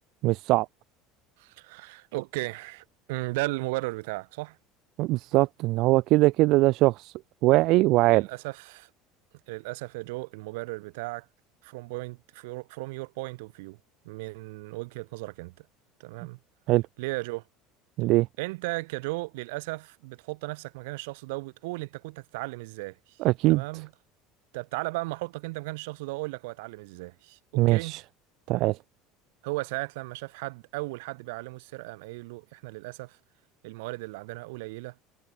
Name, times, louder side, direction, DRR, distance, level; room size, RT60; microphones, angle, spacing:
voice 1, 0.2-0.7 5.0-7.1 7.4-8.2 16.7-16.8 18.0-18.3 23.2-23.6 27.6-28.0 28.5-28.8, right 19 dB, 60° right, 0.5 m, -21 dB
voice 2, 1.4-4.6 8.1-8.9 9.5-11.3 11.6-13.8 14.0-15.7 16.0-16.4 17.0-17.4 18.4-23.2 23.5-23.9 24.5-28.0 29.4-33.2 33.6-35.0, right 24 dB, 85° right, 2.2 m, -36 dB
supercardioid pair, 125°, 0 cm